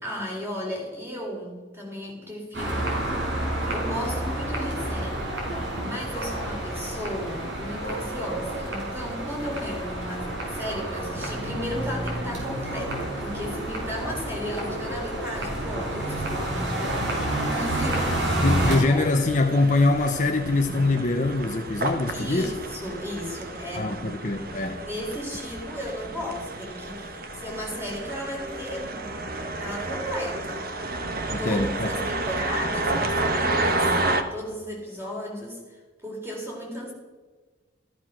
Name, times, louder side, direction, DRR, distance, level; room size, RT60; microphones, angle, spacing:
voice 1, 0.0-3.3 3.6-5.3 5.8-16.7 17.0-18.3 18.7-19.1 22.1-24.5 24.7-29.2 29.5-30.7 31.4-34.0 34.3-36.9, equal, 15° right, -1 dB, 4.0 m, -35 dB
sound 1, 2.5-18.8, right 1 dB, 80° right, 4.9 m, -29 dB
voice 2, 18.4-22.6 23.8-24.8 31.3-32.1, left 2 dB, 40° left, 4 dB, 0.8 m, -23 dB
sound 2, 18.6-34.2, right 2 dB, 50° right, 1.3 m, -30 dB
14.0 x 13.5 x 6.2 m, 1.3 s
head